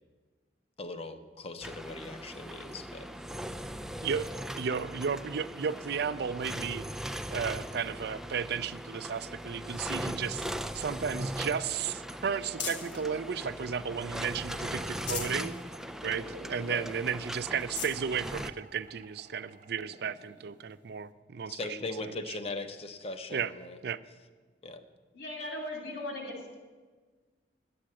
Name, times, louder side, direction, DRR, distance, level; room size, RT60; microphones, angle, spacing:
voice 1, 0.8-3.1 16.7-16.9 21.4-23.8 24.6-24.8, left 2 dB, 35° left, 8 dB, 0.8 m, -39 dB
sound 1, 1.6-18.5, equal, 5° right, 0.4 m, -39 dB
voice 2, 4.6-6.8 7.3-15.6 16.0-21.6 23.3-23.5 23.8-24.0, right 6 dB, 65° right, 14 dB, 0.5 m, -34 dB
sound 2, 10.4-13.1 13.6-14.4 14.8-15.4 15.9-16.0 16.3-16.4 17.1-17.2 17.5-18.0 18.8-18.9 20.7-20.8, left 5 dB, 85° left, 1.4 m, -41 dB
sound 3, 10.6-20.9, right 2 dB, 45° right, 1.2 m, -52 dB
voice 3, 25.1-26.6, left 1 dB, 65° left, 2 dB, 2.6 m, -38 dB
11.5 x 8.6 x 7.6 m, 1.4 s
head